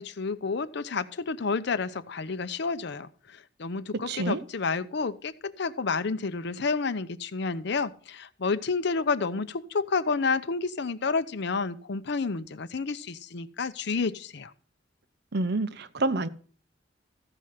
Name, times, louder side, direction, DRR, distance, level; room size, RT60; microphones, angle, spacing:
voice 1, 0.0-14.5, left 4 dB, 65° left, 0.7 m, -30 dB
voice 2, 3.9-4.4 15.3-16.3, right 2 dB, 60° right, 0.7 m, -28 dB
14.5 x 5.0 x 5.7 m
head